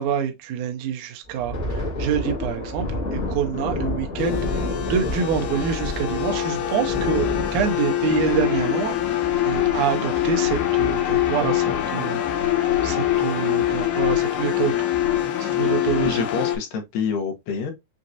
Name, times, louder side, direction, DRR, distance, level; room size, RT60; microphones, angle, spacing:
voice 1, 0.0-14.7 15.4-16.3, right 8 dB, 75° right, 1.9 m, -27 dB
Thunder, 1.3-10.3 10.7-10.9 11.3-11.5 12.1-12.6, left 1 dB, 40° left, 1.0 m, -30 dB
sound 1, 4.2-16.6, left 12 dB, 90° left, 2.9 m, -24 dB
voice 2, 16.0-17.7, left 6 dB, 75° left, 2.4 m, -27 dB
6.4 x 2.8 x 2.5 m
omnidirectional pair, 4.3 m